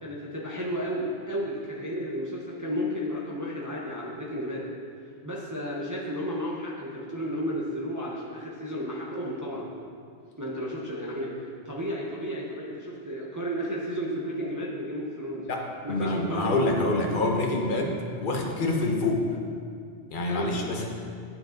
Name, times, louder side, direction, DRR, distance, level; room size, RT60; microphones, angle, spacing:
voice 1, 0.0-4.7 5.2-9.7 10.4-11.3 11.6-15.5 15.8-16.5 20.3-20.8, equal, 15° right, -5 dB, 0.9 m, -33 dB
voice 2, 15.5-19.2 20.1-20.8, left 2 dB, 50° left, 0 dB, 1.2 m, -26 dB
9.3 x 7.7 x 3.9 m, 2.2 s
omnidirectional pair, 1.2 m